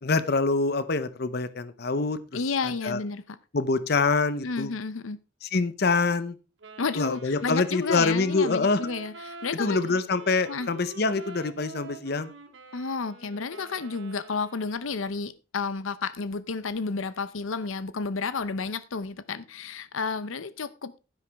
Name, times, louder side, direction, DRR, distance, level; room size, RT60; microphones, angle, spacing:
voice 1, 0.0-2.2 2.8-3.0 3.5-4.7 5.4-6.4 7.0-8.8 9.6-12.3, left 3 dB, 55° left, 14 dB, 0.7 m, -25 dB
voice 2, 2.3-3.4 4.4-5.2 6.8-10.0 10.5-10.7 12.7-21.0, left 4 dB, 85° left, 16 dB, 0.7 m, -31 dB
Wind instrument woodwind instrument, 6.6-15.1, right 3 dB, 65° right, 2.3 m, -46 dB
11.5 x 10.5 x 3.4 m, 0.31 s
head